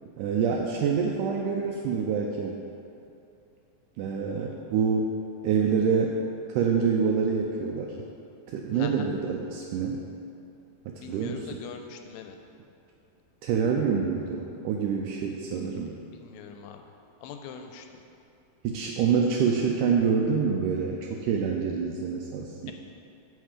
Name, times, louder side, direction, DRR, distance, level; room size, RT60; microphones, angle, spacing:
voice 1, 0.2-2.6 4.0-5.1 5.4-6.2 6.5-8.0 8.5-10.0 10.9-11.4 13.4-16.0 18.6-22.7, right 6 dB, 90° right, 0 dB, 1.8 m, -26 dB
voice 2, 8.7-9.1 11.0-12.4 15.6-16.8 17.2-18.0 22.7-22.8, left 7 dB, 80° left, 5 dB, 2.3 m, -42 dB
7.8 x 7.4 x 5.0 m, 2.6 s
omnidirectional pair, 4.3 m